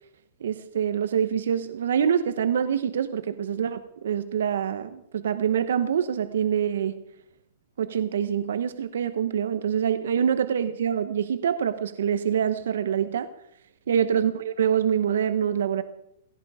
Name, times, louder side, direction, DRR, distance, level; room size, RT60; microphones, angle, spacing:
voice 1, 0.4-7.0 7.8-13.3 13.9-15.8, right 8 dB, 75° right, 11 dB, 1.0 m, -25 dB
17.0 x 16.5 x 4.9 m, 0.77 s
hypercardioid pair, 170°, 0 cm